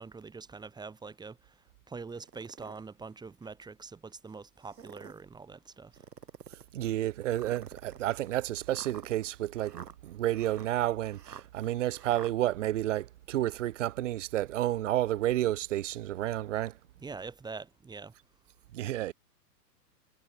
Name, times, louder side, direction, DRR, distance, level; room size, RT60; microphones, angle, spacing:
voice 1, 0.0-6.1 17.0-18.1, right 4 dB, 10° right, 2.4 m, -44 dB
sound 1, 2.1-2.8 3.4-3.5 4.6-5.2 5.9-6.7 7.3-12.3, right 7 dB, 75° right, 2.6 m, -49 dB
voice 2, 6.7-16.7 18.7-19.1, right 14 dB, 50° right, 0.5 m, -31 dB
figure-of-eight pair, 115°, 49 cm